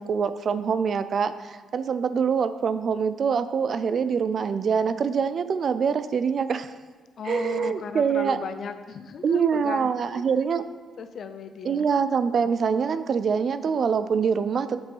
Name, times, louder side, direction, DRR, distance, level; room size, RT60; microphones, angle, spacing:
voice 1, 0.0-6.8 7.3-8.4 9.2-10.6 11.6-14.8, right 6 dB, 50° right, 12 dB, 0.4 m, -24 dB
voice 2, 7.2-10.2 11.0-11.9, left 5 dB, 55° left, 9 dB, 0.5 m, -36 dB
6.0 x 5.3 x 5.5 m, 1.4 s
cardioid pair, 90°, 0 cm